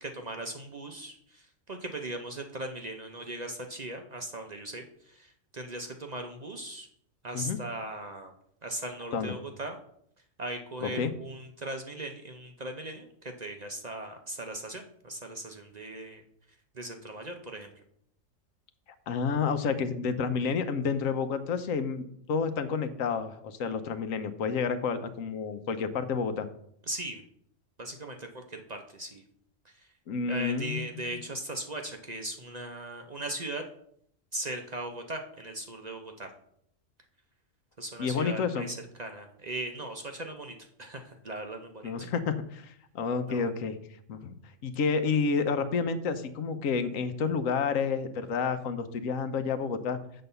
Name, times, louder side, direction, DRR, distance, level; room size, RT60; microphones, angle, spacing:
voice 1, 0.0-1.4 1.7-4.8 5.2-6.9 7.2-8.3 8.6-9.8 10.4-13.1 13.4-16.2 16.7-17.7 26.9-27.2 27.8-29.2 30.3-33.6 34.3-36.3 37.8-42.1 43.3-43.5, right 1 dB, 40° right, 4 dB, 0.7 m, -38 dB
voice 2, 10.8-11.1 19.1-26.5 30.1-31.1 38.0-38.7 41.8-43.8 44.1-44.4 44.6-50.0, left 5 dB, 80° left, 10 dB, 1.1 m, -30 dB
7.7 x 4.1 x 6.7 m, 0.68 s
omnidirectional pair, 1.4 m